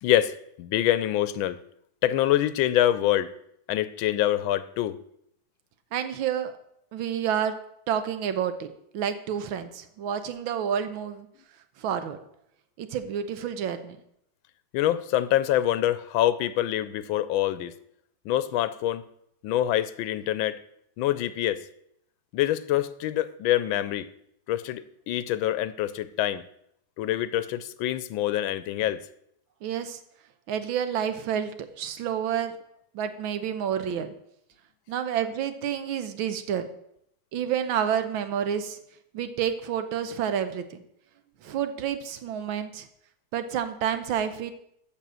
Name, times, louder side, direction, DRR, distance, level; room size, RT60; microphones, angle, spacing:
voice 1, 0.0-1.6 2.0-3.3 3.7-5.0 14.7-17.7 18.3-19.0 19.4-20.6 21.0-21.6 22.3-24.1 24.5-26.4 27.0-29.0, left 12 dB, 85° left, 1.4 m, -25 dB
voice 2, 5.9-6.5 6.9-7.6 7.9-8.7 8.9-11.3 11.8-12.2 12.8-14.0 29.6-30.0 30.5-32.5 32.9-34.1 34.9-36.7 37.3-38.8 39.1-40.8 41.4-42.9 43.3-44.5, right 8 dB, 80° right, 1.6 m, -29 dB
7.2 x 6.7 x 7.6 m
omnidirectional pair, 2.2 m